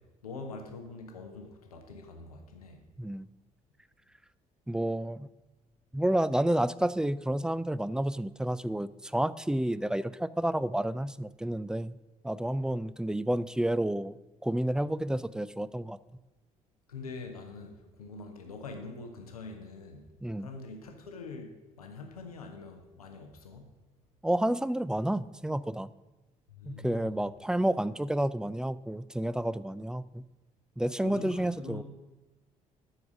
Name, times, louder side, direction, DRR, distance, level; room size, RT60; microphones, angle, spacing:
voice 1, 0.2-2.8 16.9-20.1 20.4-23.7 26.5-27.1 31.0-31.8, left 3 dB, 90° left, 4 dB, 0.8 m, -44 dB
voice 2, 4.7-5.3 5.9-12.0 12.2-14.2 14.4-16.0 20.2-20.5 24.2-25.9 26.7-30.2 30.8-31.8, right 1 dB, 5° right, 17 dB, 0.3 m, -30 dB
12.0 x 4.7 x 6.2 m, 1.2 s
hypercardioid pair, 45°, 18 cm